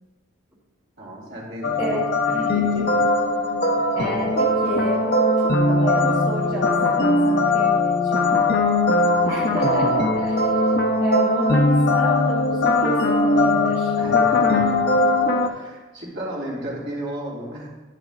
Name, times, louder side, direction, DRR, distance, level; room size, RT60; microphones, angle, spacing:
voice 1, 1.0-2.0 2.5-3.0 9.1-9.5 14.0-14.8 15.4-17.7, right 1 dB, 50° right, -5 dB, 3.1 m, -34 dB
sound 1, 1.6-15.5, left 2 dB, 45° left, 0.6 m, -20 dB
voice 2, 1.8-2.5 3.9-8.5 9.2-10.6 11.0-14.0, equal, 15° right, -7 dB, 1.2 m, -30 dB
10.0 x 10.0 x 2.5 m, 1.2 s
head